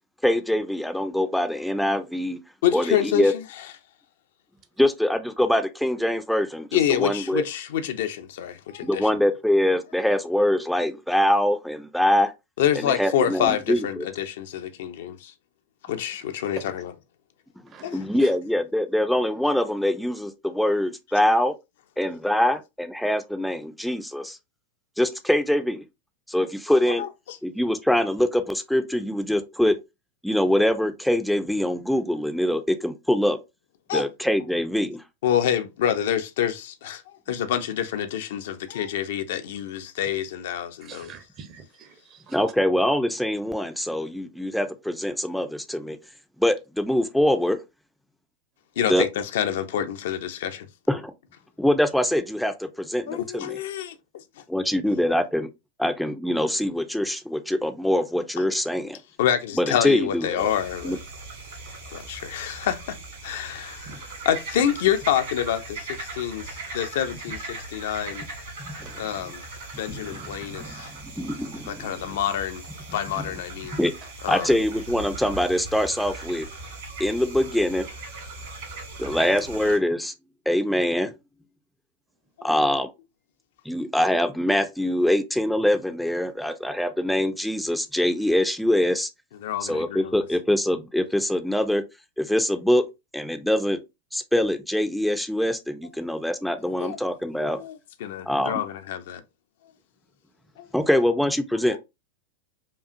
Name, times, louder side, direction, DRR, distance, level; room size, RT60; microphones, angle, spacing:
voice 1, 0.2-2.4 2.7-3.3 4.8-7.4 8.8-12.3 12.8-14.1 17.9-21.5 22.0-24.4 25.0-25.8 26.3-27.0 27.4-29.8 30.2-33.4 33.9-35.0 42.3-46.0 46.4-47.6 48.9-49.0 50.9-51.1 51.6-53.6 54.5-55.5 55.8-59.0 59.6-60.5 60.8-61.0 63.9-64.0 68.6-68.9 69.9-72.2 73.2-73.3 73.7-73.9 74.3-76.5 77.0-77.9 79.0-80.1 80.5-81.1 82.4-82.9 83.7-89.1 89.6-91.8 92.2-92.8 93.1-93.8 94.1-97.6 98.3-98.6 100.7-101.8, left 1 dB, ahead, 0.4 m, -24 dB
voice 2, 2.6-3.6 6.7-9.1 12.6-15.3 15.9-16.9 17.8-18.0 27.0-27.4 33.9-34.0 35.2-41.1 48.8-50.7 53.1-54.0 54.4-54.5 59.2-61.0 61.9-63.0 63.2-68.2 69.0-69.4 69.8-70.9 71.7-72.6 72.9-73.8 74.2-74.5 89.4-90.2 96.8-97.0 97.4-99.2 100.6-100.7 101.7-101.8, left 10 dB, 55° left, 0.5 m, -27 dB
voice 3, 17.7-18.3 40.8-42.4 63.9-64.0 68.8-68.9, right 6 dB, 30° right, 0.7 m, -46 dB
sound 1, 60.4-79.8, right 3 dB, 55° right, 1.6 m, -39 dB
5.2 x 2.4 x 2.5 m
figure-of-eight pair, 90°, 0 cm